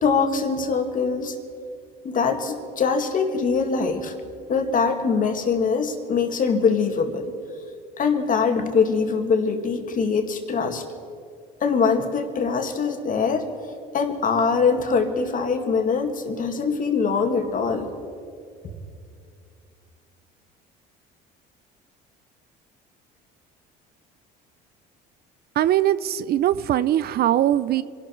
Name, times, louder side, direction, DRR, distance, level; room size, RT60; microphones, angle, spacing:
voice 1, 0.0-1.4 2.0-4.1 4.5-7.3 8.0-10.8 11.6-13.5 13.9-17.9, left 5 dB, 45° left, 5 dB, 2.1 m, -23 dB
voice 2, 25.5-27.8, right 12 dB, 55° right, 16 dB, 0.5 m, -21 dB
26.0 x 12.0 x 4.6 m, 2.4 s
supercardioid pair, 90°, 19 cm